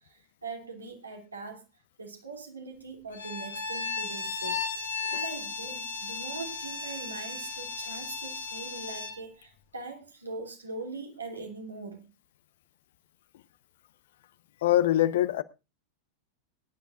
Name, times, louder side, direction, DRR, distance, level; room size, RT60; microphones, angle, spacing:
voice 1, 0.0-1.6 2.0-12.1, right 3 dB, 75° right, 2.9 m, -42 dB
Bowed string instrument, 3.1-9.2, left 4 dB, 70° left, 2.7 m, -35 dB
voice 2, 14.6-15.4, left 13 dB, 55° left, 0.8 m, -23 dB
22.5 x 10.5 x 2.5 m
figure-of-eight pair, 90°, 0 cm